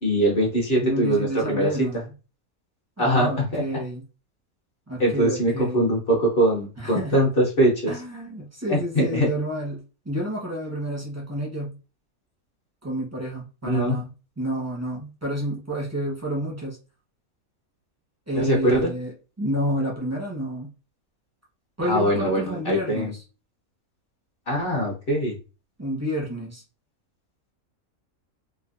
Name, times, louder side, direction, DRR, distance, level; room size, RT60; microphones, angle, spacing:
voice 1, 0.0-2.0 3.0-3.8 5.0-7.9 8.7-9.3 13.6-14.0 18.3-18.9 21.8-23.1 24.5-25.3, right 1 dB, 50° left, -1 dB, 0.8 m, -22 dB
voice 2, 0.8-2.1 3.0-4.0 4.9-5.8 6.8-7.2 7.9-11.8 12.8-14.1 14.4-16.8 18.3-20.7 21.8-23.2 25.8-26.6, equal, 20° right, -4 dB, 0.5 m, -29 dB
3.3 x 2.0 x 2.4 m, 0.32 s
omnidirectional pair, 1.6 m